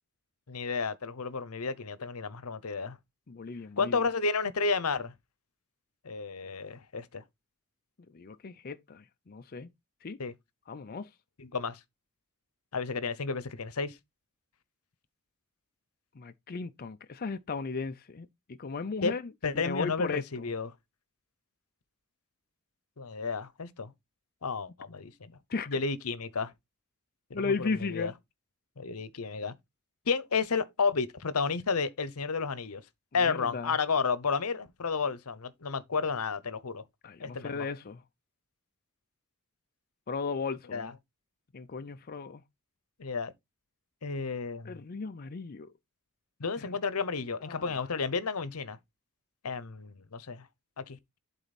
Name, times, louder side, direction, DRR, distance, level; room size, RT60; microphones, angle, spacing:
voice 1, 0.5-3.0 3.8-5.1 6.0-7.2 10.2-10.3 11.4-11.8 12.7-14.0 19.0-19.1 19.4-20.7 23.0-23.9 24.4-25.4 25.7-26.5 27.3-28.1 28.8-29.5 30.1-32.8 33.1-36.8 37.2-37.7 40.7-40.9 43.0-43.3 44.0-44.8 46.4-48.8 49.4-50.5 50.8-51.0, left 4 dB, 80° left, 0.9 m, -32 dB
voice 2, 3.3-4.0 8.1-9.7 10.0-10.2 10.7-11.1 16.2-19.2 19.5-20.5 25.5-25.7 27.3-28.1 33.2-33.7 37.0-38.0 40.1-40.9 41.5-42.4 44.6-45.7 46.6-46.7 47.5-47.9, left 4 dB, 40° left, 0.5 m, -36 dB
11.0 x 4.1 x 4.1 m
head